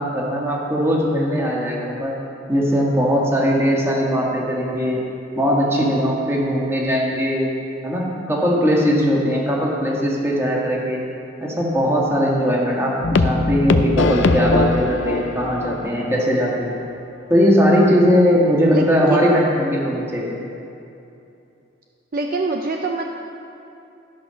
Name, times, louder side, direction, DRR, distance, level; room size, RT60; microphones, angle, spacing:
voice 1, 0.0-2.1 2.5-5.0 5.3-7.5 7.8-11.0 11.4-16.8 17.3-20.4, equal, 15° right, -3 dB, 1.8 m, -19 dB
sound 1, 13.0-15.8 16.2-16.3 16.7-16.8, left 3 dB, 75° left, 0.5 m, -20 dB
voice 2, 18.7-19.4 22.1-23.0, right 3 dB, 50° right, 2 dB, 0.6 m, -24 dB
13.0 x 6.3 x 5.8 m, 2.7 s
head